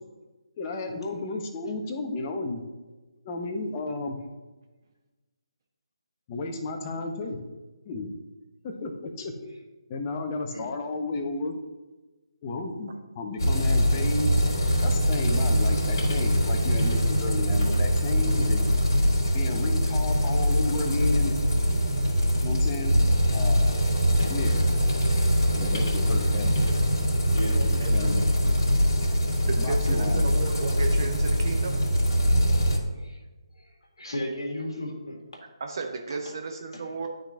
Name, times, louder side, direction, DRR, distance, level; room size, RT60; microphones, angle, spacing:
voice 1, 0.6-2.6 3.2-4.2 6.3-7.4 7.8-8.2 8.6-9.5 9.9-11.5 12.4-14.4 14.8-18.6 19.3-21.3 22.4-23.0 23.3-23.8 24.3-24.6 25.5-26.5 27.5-28.3 29.6-30.3, left 3 dB, 25° left, 4 dB, 0.8 m, -33 dB
sound 1, 13.4-32.8, equal, 40° left, 2.0 m, -23 dB
voice 2, 27.3-28.0 29.0-29.1 33.0-33.2 34.0-35.4 36.7-36.8, left 1 dB, 65° left, -1 dB, 2.0 m, -35 dB
voice 3, 29.6-31.8 35.6-37.1, right 4 dB, 45° right, 2 dB, 0.7 m, -34 dB
11.5 x 3.9 x 2.7 m, 1.2 s
figure-of-eight pair, 145°, 3 cm